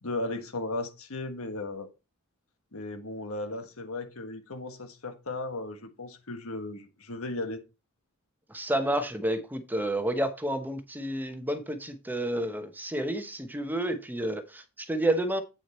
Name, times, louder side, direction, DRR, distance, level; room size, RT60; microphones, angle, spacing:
voice 1, 0.0-1.9 2.7-7.6, left 2 dB, 70° left, 1.4 m, -36 dB
voice 2, 8.5-15.4, right 1 dB, 10° right, 1.0 m, -30 dB
8.5 x 6.4 x 4.3 m
head